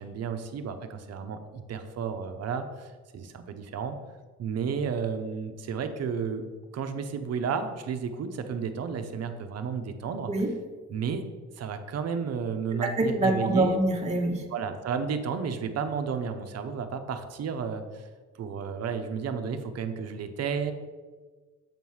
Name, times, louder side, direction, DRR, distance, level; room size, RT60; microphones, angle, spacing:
voice 1, 0.0-4.0 4.4-6.4 6.7-10.3 10.9-11.2 11.6-13.8 14.5-18.1 18.4-20.7, right 6 dB, 55° right, 7 dB, 0.6 m, -32 dB
voice 2, 12.8-14.4, right 1 dB, 20° right, 1 dB, 0.8 m, -25 dB
7.3 x 3.1 x 5.5 m, 1.4 s
cardioid pair, 90°, 30 cm